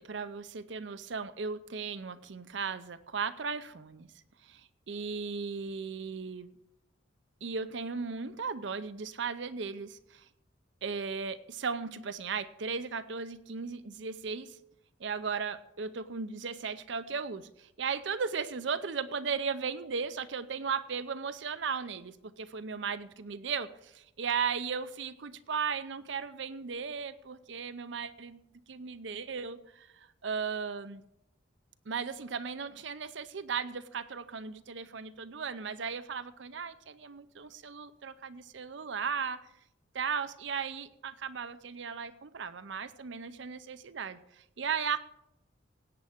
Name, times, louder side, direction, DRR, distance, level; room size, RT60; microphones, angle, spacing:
voice 1, 0.0-4.1 4.4-6.6 7.4-10.3 10.8-14.6 15.0-28.4 28.7-31.0 31.9-39.4 39.9-45.0, right 5 dB, 70° right, 13 dB, 0.6 m, -36 dB
17.5 x 8.7 x 3.6 m, 0.82 s
head